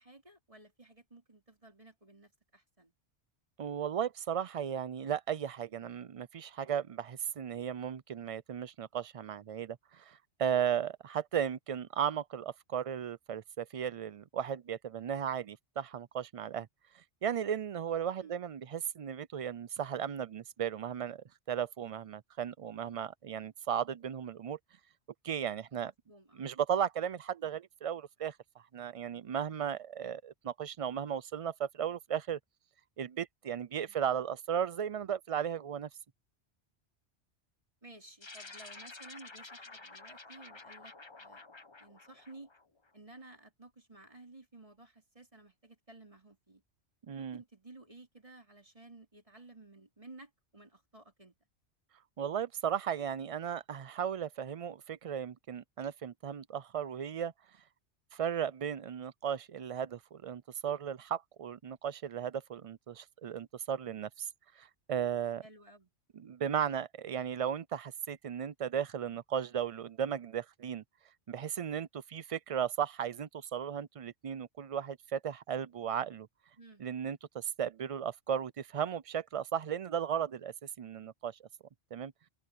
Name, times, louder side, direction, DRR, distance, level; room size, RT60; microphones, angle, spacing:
voice 1, 0.0-2.9 18.1-18.4 25.8-26.5 29.9-30.2 33.8-34.0 37.8-40.9 41.2-41.4 41.8-42.5 42.9-46.6 47.2-51.4 65.4-65.9 76.6-76.8, right 2 dB, 30° right, 4.3 m, -55 dB
voice 2, 3.6-16.7 17.2-24.6 25.2-25.9 26.4-28.4 28.7-32.4 33.0-35.9 47.1-47.4 52.2-57.3 58.1-64.3 64.6-65.4 66.2-70.8 71.3-76.3 76.8-81.4 81.9-82.1, right 8 dB, 60° right, 0.3 m, -35 dB
sound 1, 38.2-42.9, left 3 dB, 25° left, 1.1 m, -51 dB
omnidirectional pair, 1.2 m